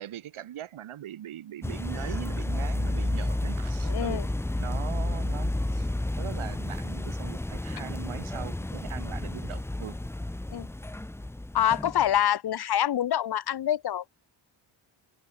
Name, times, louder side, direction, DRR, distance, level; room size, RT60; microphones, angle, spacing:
voice 1, 0.0-4.2 4.6-5.9 6.2-10.0, right 11 dB, 85° right, 5.4 m, -41 dB
sound 1, 1.6-12.2, left 1 dB, 5° left, 0.8 m, -31 dB
voice 2, 3.9-4.2 10.5-10.7 11.5-14.1, left 11 dB, 50° left, 1.0 m, -26 dB
wide cardioid pair, 170°, 48 cm